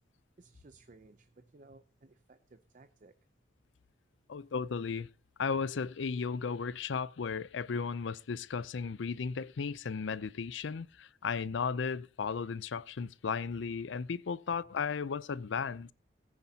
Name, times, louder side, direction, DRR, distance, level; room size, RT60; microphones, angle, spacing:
voice 1, 0.4-3.1, right 3 dB, 45° right, 0.6 m, -58 dB
voice 2, 4.3-5.1 5.4-15.9, left 5 dB, 75° left, 0.5 m, -35 dB
18.0 x 9.5 x 2.8 m
head